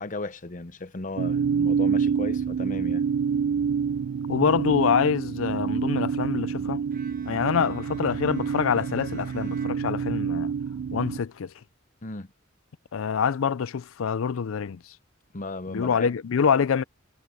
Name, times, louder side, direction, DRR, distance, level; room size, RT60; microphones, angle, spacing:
voice 1, 0.0-3.1 12.0-12.3 15.3-16.1, left 2 dB, 40° left, 0.9 m, -35 dB
sound 1, 1.2-11.2, right 6 dB, 70° right, 0.3 m, -27 dB
voice 2, 4.3-6.8 7.3-10.5 10.9-11.5 12.9-14.8 15.7-16.8, left 6 dB, 85° left, 0.5 m, -25 dB
Bowed string instrument, 6.9-10.6, right 3 dB, 45° right, 1.4 m, -50 dB
head